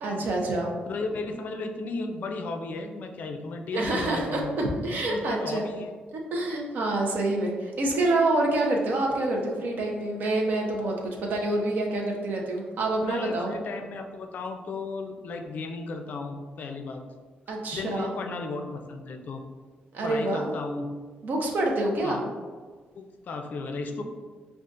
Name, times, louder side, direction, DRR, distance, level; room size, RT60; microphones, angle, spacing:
voice 1, 0.0-0.7 3.7-5.7 6.3-13.5 17.5-18.1 19.9-20.5 21.2-22.3, right 2 dB, 60° right, 0 dB, 0.7 m, -27 dB
voice 2, 0.9-4.6 4.8-5.9 13.0-17.0 17.7-19.4 20.0-20.9 22.0-22.2 22.9-24.0, left 3 dB, 55° left, 4 dB, 0.4 m, -35 dB
5.1 x 2.4 x 2.4 m, 1.5 s
cardioid pair, 125°, 3 cm